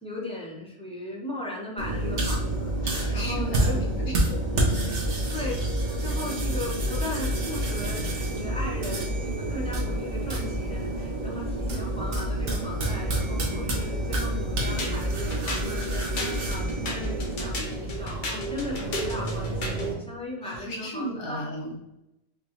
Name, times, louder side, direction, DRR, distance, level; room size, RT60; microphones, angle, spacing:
voice 1, 0.0-2.7 3.1-3.9 5.3-5.5 5.9-21.4, left 2 dB, 5° left, -4 dB, 0.7 m, -37 dB
sound 1, 1.8-19.9, right 1 dB, 55° right, 1.2 m, -28 dB
voice 2, 2.8-3.8 4.5-4.9 20.4-21.7, equal, 85° left, -2 dB, 1.6 m, -34 dB
sound 2, 14.8-19.9, left 1 dB, 60° left, 1.2 m, -34 dB
5.3 x 2.4 x 3.0 m, 0.89 s
omnidirectional pair, 1.5 m